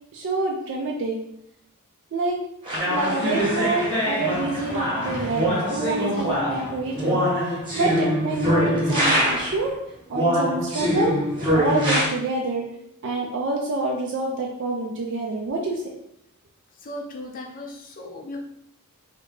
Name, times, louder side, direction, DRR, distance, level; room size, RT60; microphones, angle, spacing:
voice 1, 0.1-1.2 2.1-2.4 2.8-9.7 10.1-11.2 11.5-12.7 13.0-15.8, right 2 dB, 55° right, 0 dB, 0.4 m, -27 dB
sound 1, 2.6-9.6 10.1-12.1, equal, 20° right, 1.0 m, -23 dB
voice 2, 16.8-18.4, left 1 dB, 40° left, 1 dB, 0.5 m, -37 dB
2.8 x 2.7 x 3.5 m, 0.75 s
head